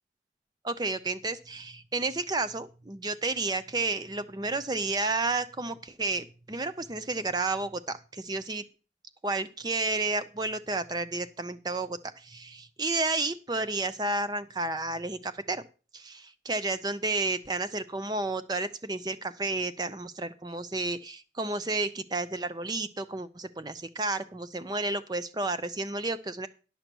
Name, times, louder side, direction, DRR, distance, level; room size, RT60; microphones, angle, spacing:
voice 1, 0.6-8.6 9.2-15.6 15.9-26.5, right 3 dB, 25° right, 12 dB, 0.5 m, -31 dB
10.0 x 6.7 x 6.1 m, 0.36 s
head